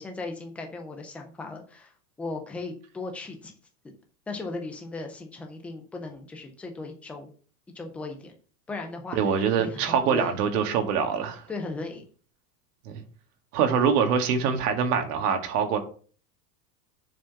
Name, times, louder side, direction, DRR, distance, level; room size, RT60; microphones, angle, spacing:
voice 1, 0.0-1.9 2.2-3.5 3.8-3.9 4.3-7.3 7.7-8.3 8.7-9.2 9.6-10.3 11.5-12.0, left 3 dB, 5° left, 0.3 m, -37 dB
voice 2, 9.2-11.4 12.9-13.0 13.5-15.8, right 6 dB, 65° right, 2.1 m, -24 dB
7.4 x 4.6 x 5.8 m
supercardioid pair, 150°, 49 cm